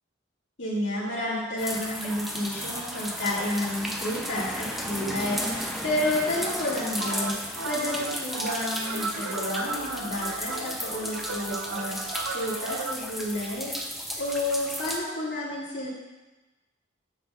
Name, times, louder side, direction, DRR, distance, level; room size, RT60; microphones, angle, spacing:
voice 1, 0.6-7.3 7.6-12.0 12.3-13.7 14.1-15.9, left 1 dB, 65° left, -7 dB, 2.1 m, -30 dB
sound 1, 1.6-15.0, equal, ahead, 0.5 m, -34 dB
sound 2, 7.0-12.9, right 3 dB, 85° right, 0.4 m, -35 dB
8.2 x 5.6 x 2.4 m, 1.2 s
head